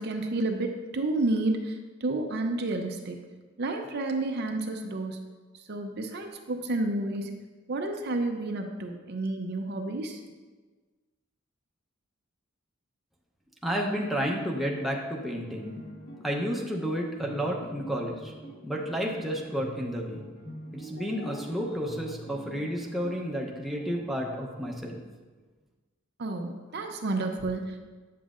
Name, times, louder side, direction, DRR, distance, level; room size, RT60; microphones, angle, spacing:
voice 1, 0.0-3.2 3.6-5.2 5.7-7.3 7.7-10.2 26.2-27.8, right 2 dB, 50° right, 4 dB, 0.6 m, -30 dB
voice 2, 13.6-15.7 16.2-18.3 18.6-20.2 20.7-25.0, equal, ahead, -2 dB, 0.7 m, -31 dB
sound 1, 15.4-24.7, right 1 dB, 45° left, 1.4 m, -45 dB
9.2 x 7.0 x 2.5 m, 1.4 s
head